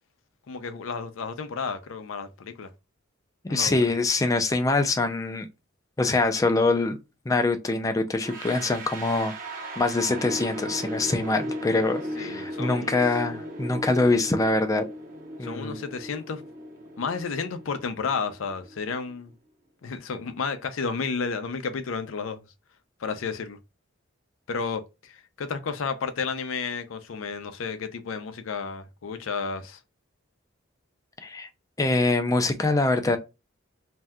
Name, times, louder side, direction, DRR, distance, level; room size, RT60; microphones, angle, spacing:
voice 1, 0.5-2.7 3.5-3.8 12.2-13.0 15.4-16.4 17.0-19.3 19.8-22.4 23.0-23.6 24.5-29.8, left 5 dB, 75° left, 0.5 m, -32 dB
voice 2, 3.5-5.5 6.0-7.0 7.3-9.3 9.8-14.9 15.4-15.8 31.2-31.5 31.8-33.2, left 2 dB, 15° left, 0.4 m, -24 dB
sound 1, 8.2-19.1, equal, 40° right, 0.7 m, -37 dB
2.7 x 2.2 x 3.4 m
head